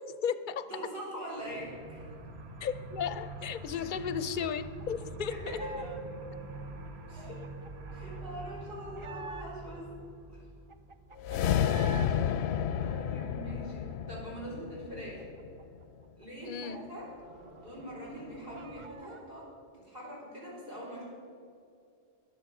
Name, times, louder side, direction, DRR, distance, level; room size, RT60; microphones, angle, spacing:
voice 1, 0.0-0.7 2.6-5.6 16.4-16.8, left 7 dB, 55° left, 13 dB, 0.7 m, -35 dB
voice 2, 0.7-2.1 3.7-3.9 5.3-5.9 7.1-7.4 7.9-9.9 10.3-10.4 12.8-15.3 16.2-17.1 17.6-21.1, equal, 60° right, -4 dB, 4.4 m, -43 dB
sound 1, 1.4-11.3 16.9-18.9, right 3 dB, 85° right, 1.3 m, -45 dB
sound 2, 4.4-6.0 6.3-9.8 10.2-10.3 10.5-12.1 12.5-14.2 14.5-14.6 14.9-17.4 17.6-17.7 18.1-19.2, right 3 dB, 40° right, 0.5 m, -49 dB
sound 3, 11.2-15.6, left 9 dB, 90° left, 0.8 m, -31 dB
22.0 x 7.5 x 4.8 m, 2.4 s
omnidirectional pair, 1.1 m